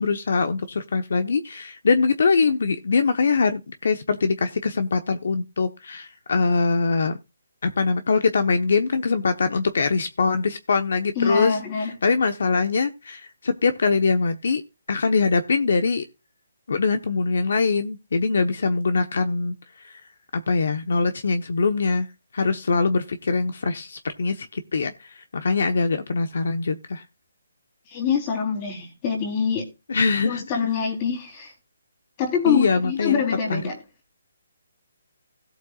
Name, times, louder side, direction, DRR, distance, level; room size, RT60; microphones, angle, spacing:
voice 1, 0.0-7.2 7.6-14.6 14.9-16.0 16.7-20.0 20.3-22.1 22.3-27.0 29.9-30.6 32.5-33.2 33.5-33.6, left 4 dB, 65° left, 1.1 m, -23 dB
voice 2, 11.2-11.9 27.9-29.7 30.2-31.5 32.2-33.8, left 6 dB, 25° left, 3.7 m, -25 dB
17.0 x 8.0 x 2.4 m
hypercardioid pair, 160°, 0 cm